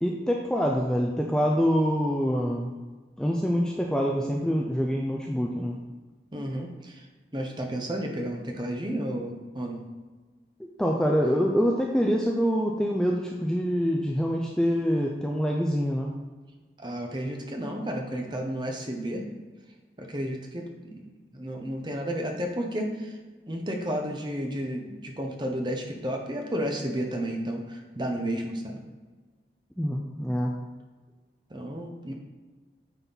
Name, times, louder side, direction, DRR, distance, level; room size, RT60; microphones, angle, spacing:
voice 1, 0.0-2.7 3.2-5.8 10.6-16.1 29.8-30.6, equal, 5° left, -1 dB, 0.4 m, -25 dB
voice 2, 6.3-7.1 7.3-9.8 16.8-19.2 20.0-23.2 23.5-28.8 31.5-32.1, equal, 25° right, 2 dB, 0.9 m, -32 dB
9.0 x 4.4 x 4.0 m, 1.3 s
head